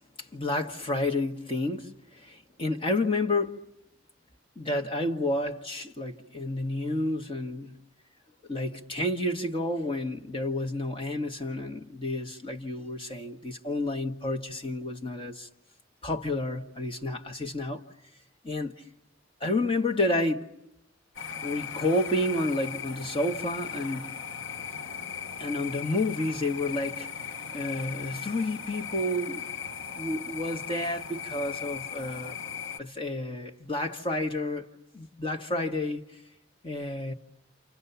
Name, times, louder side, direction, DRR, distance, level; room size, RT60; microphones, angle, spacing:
voice 1, 0.2-3.6 4.6-7.8 8.5-15.5 16.0-17.8 18.4-18.7 19.4-20.5 21.4-24.2 25.4-27.1 27.5-29.4 29.9-32.3 32.8-34.7 34.9-36.1 36.6-37.1, left 1 dB, 30° left, 1.4 m, -30 dB
sound 1, 21.1-32.8, left 7 dB, 90° left, 1.0 m, -38 dB
29.0 x 28.0 x 6.9 m
head